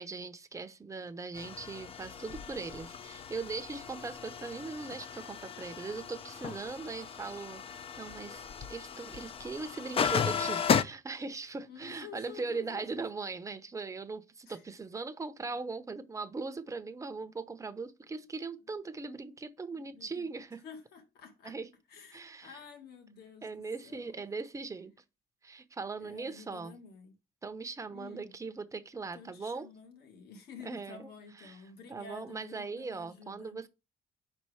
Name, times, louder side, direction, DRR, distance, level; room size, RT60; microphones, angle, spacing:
voice 1, 0.0-20.6 21.4-21.7 22.1-22.6 23.4-24.9 25.4-26.7 27.4-29.7 30.6-31.1 31.4-31.6 31.9-33.7, right 4 dB, 20° right, 0.7 m, -40 dB
sound 1, 1.4-10.8, left 7 dB, 35° left, 0.5 m, -35 dB
voice 2, 11.7-13.1 14.5-14.6 15.4-15.5 16.1-16.3 16.8-16.9 19.7-20.3 20.5-21.5 21.9-24.2 26.0-27.2 27.9-28.3 29.1-33.6, left 6 dB, 70° left, 1.7 m, -51 dB
5.0 x 4.4 x 4.8 m
cardioid pair, 110°, 17 cm